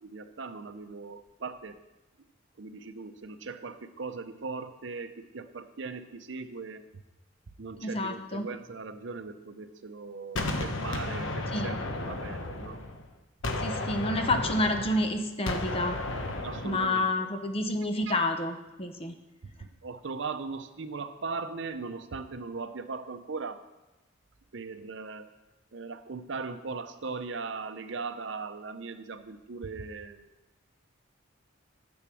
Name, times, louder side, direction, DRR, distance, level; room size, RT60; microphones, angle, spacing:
voice 1, 0.0-1.8 2.6-6.8 7.6-12.8 13.5-14.1 16.4-17.1 19.6-23.6 24.5-25.3 25.7-30.3, right 4 dB, 65° right, 10 dB, 0.7 m, -39 dB
voice 2, 7.8-8.5 11.5-11.7 13.6-16.0 16.6-19.1, left 1 dB, 30° left, 6 dB, 0.9 m, -29 dB
Gunshot gunfire, 10.4-13.1 13.4-17.0, left 2 dB, 75° left, 1.1 m, -33 dB
10.0 x 7.1 x 6.2 m, 1.0 s
head